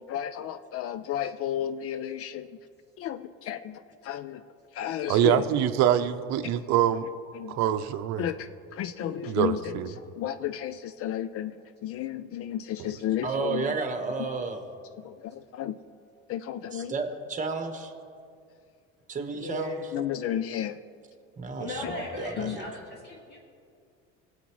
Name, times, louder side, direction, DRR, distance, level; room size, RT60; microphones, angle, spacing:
voice 1, 0.0-2.5 3.0-4.4 4.7-5.5 6.4-6.5 7.3-7.7 8.2-11.6 11.8-13.7 15.0-15.8 16.3-16.9 19.9-20.8 21.8-21.9 22.4-22.6, left 11 dB, 50° left, 13 dB, 0.4 m, -33 dB
voice 2, 5.1-7.1 7.5-8.3 9.3-9.9, right 11 dB, 60° right, 11 dB, 0.7 m, -24 dB
voice 3, 9.0-9.4 19.3-19.9 21.6-23.4, left 1 dB, 35° left, -2 dB, 2.3 m, -37 dB
voice 4, 13.2-14.6 16.7-17.9 19.1-19.7 21.4-22.7, right 4 dB, 25° right, 6 dB, 1.3 m, -32 dB
19.0 x 8.0 x 3.1 m, 2.3 s
supercardioid pair, 105°, 31 cm